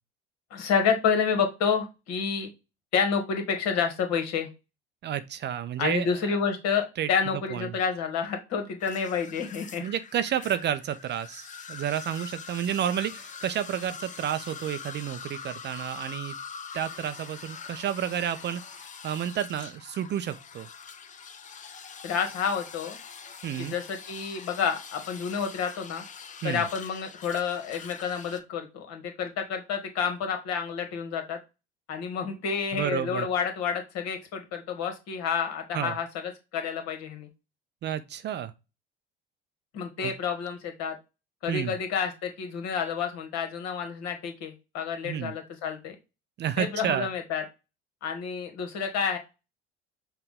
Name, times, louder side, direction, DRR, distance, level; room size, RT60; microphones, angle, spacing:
voice 1, 0.5-2.5 2.9-4.5 5.8-9.8 22.0-23.0 23.6-26.0 26.4-31.4 31.9-36.1 36.5-37.3 39.7-41.0 41.4-46.0 46.6-47.4 48.0-49.2, left 6 dB, 55° left, 1.3 m, -29 dB
voice 2, 5.0-6.4 7.0-7.1 7.5-7.8 9.8-16.4 16.7-18.6 19.0-20.7 23.4-23.7 26.4-26.6 32.7-33.3 35.7-36.0 37.8-38.5 40.0-40.1 41.5-41.7 45.0-45.3 46.4-47.1, right 10 dB, 35° right, 0.4 m, -30 dB
sound 1, 8.8-28.4, left 6 dB, 25° left, 0.6 m, -44 dB
5.7 x 2.2 x 3.5 m
figure-of-eight pair, 60°, 31 cm